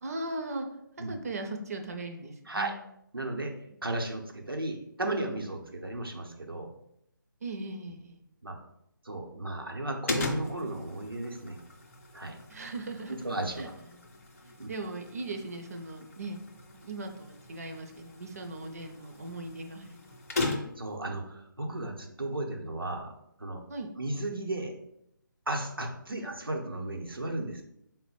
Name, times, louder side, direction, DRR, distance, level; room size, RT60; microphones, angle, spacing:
voice 1, 0.0-0.7 1.1-2.7 7.4-8.2 12.5-13.1 13.6-16.4 16.7-20.1 23.7-23.9 26.1-26.2, right 2 dB, 45° right, 4 dB, 0.5 m, -39 dB
voice 2, 3.1-3.5 3.8-6.7 8.4-8.6 9.0-11.6 12.1-12.4 13.1-13.7 14.6-14.7 20.8-23.1 23.4-23.6 23.9-24.7 25.5-27.6, right 2 dB, 90° right, 2 dB, 0.8 m, -34 dB
sound 1, 10.1-21.0, left 2 dB, 40° left, 0.6 m, -38 dB
3.9 x 2.1 x 4.1 m, 0.79 s
figure-of-eight pair, 150°, 12 cm